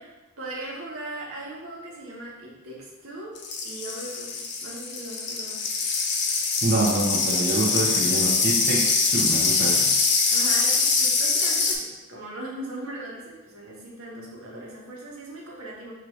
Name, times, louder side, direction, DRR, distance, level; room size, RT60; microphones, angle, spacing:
voice 1, 0.0-3.3 3.6-5.6 10.3-15.9, right 1 dB, 85° right, -5 dB, 1.3 m, -39 dB
sound 1, 3.4-11.7, left 4 dB, 55° left, 0.6 m, -23 dB
voice 2, 6.6-9.9, right 2 dB, 50° right, -6 dB, 0.7 m, -26 dB
6.1 x 2.7 x 3.1 m, 1.1 s
head